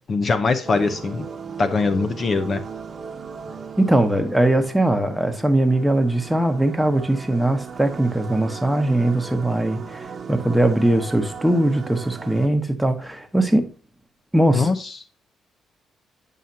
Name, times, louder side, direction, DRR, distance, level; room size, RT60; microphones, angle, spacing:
voice 1, 0.1-1.3 1.6-2.6 14.5-14.9, left 4 dB, 45° left, 0.7 m, -22 dB
sound 1, 0.6-12.5, right 6 dB, 40° right, 1.0 m, -37 dB
voice 2, 3.8-13.7 14.3-14.7, right 1 dB, 5° right, 1.1 m, -20 dB
9.0 x 5.7 x 2.7 m
cardioid pair, 90°, 0 cm